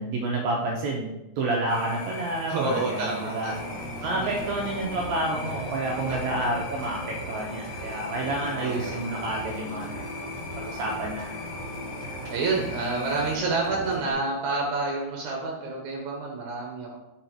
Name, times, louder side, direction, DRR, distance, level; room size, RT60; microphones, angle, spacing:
voice 1, 0.0-3.5 4.0-9.9 10.6-11.3 11.7-11.8, right 2 dB, 90° right, -1 dB, 1.6 m, -29 dB
sound 1, 1.7-13.4, left 3 dB, 80° left, 2.8 m, -40 dB
voice 2, 2.5-3.8 4.2-4.4 6.1-6.5 7.7-8.2 8.4-9.1 10.6-11.1 12.3-17.0, right 3 dB, 70° right, -1 dB, 1.9 m, -30 dB
sound 2, 3.5-14.1, right 1 dB, 45° left, 1.5 m, -39 dB
6.2 x 4.1 x 4.4 m, 0.97 s
omnidirectional pair, 4.1 m